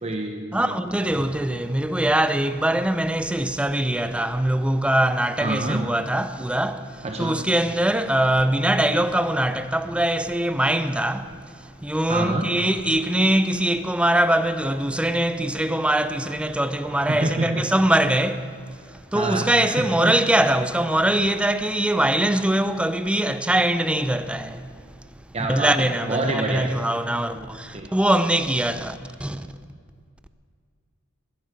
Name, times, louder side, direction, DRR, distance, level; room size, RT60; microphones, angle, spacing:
voice 1, 0.0-0.8 5.4-5.8 7.0-7.4 12.1-12.5 16.9-17.7 19.1-20.1 25.3-26.7 27.7-27.9, right 2 dB, 30° right, 0.9 m, -27 dB
voice 2, 0.5-25.0 25.5-29.5, right 1 dB, 5° right, 0.5 m, -22 dB
20.5 x 11.0 x 5.2 m
head